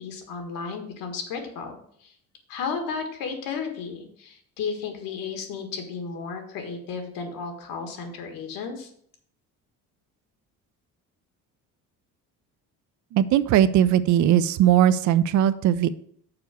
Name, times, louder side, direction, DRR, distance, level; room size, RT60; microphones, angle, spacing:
voice 1, 0.0-2.1 2.5-8.9, left 5 dB, 80° left, 5 dB, 1.8 m, -33 dB
voice 2, 13.1-15.9, right 11 dB, 60° right, 15 dB, 0.5 m, -19 dB
6.8 x 4.6 x 6.8 m, 0.63 s
cardioid pair, 165°, 34 cm